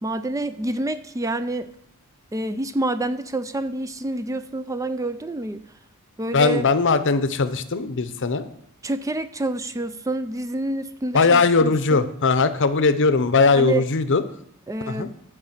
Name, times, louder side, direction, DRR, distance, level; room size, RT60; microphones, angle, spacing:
voice 1, 0.0-1.7 2.3-5.6 6.2-6.7 8.8-12.1 13.6-13.8 14.7-15.1, right 2 dB, 15° right, 12 dB, 0.4 m, -28 dB
voice 2, 6.3-8.5 11.1-14.2 14.9-15.1, left 4 dB, 55° left, 12 dB, 0.8 m, -19 dB
11.0 x 5.0 x 8.0 m, 0.72 s
head